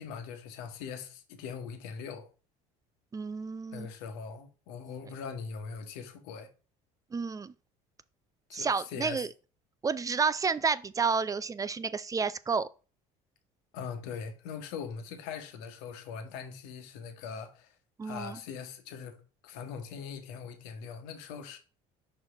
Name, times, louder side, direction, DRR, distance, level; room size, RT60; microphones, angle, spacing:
voice 1, 0.0-2.3 3.7-6.5 8.5-9.3 13.7-17.7 18.0-21.6, left 6 dB, 80° left, 1.4 m, -41 dB
voice 2, 3.1-3.9 7.1-7.5 8.5-9.3 9.8-12.7 18.0-18.4, right 5 dB, 20° right, 0.5 m, -30 dB
6.0 x 4.6 x 3.7 m
supercardioid pair, 90°, 16 cm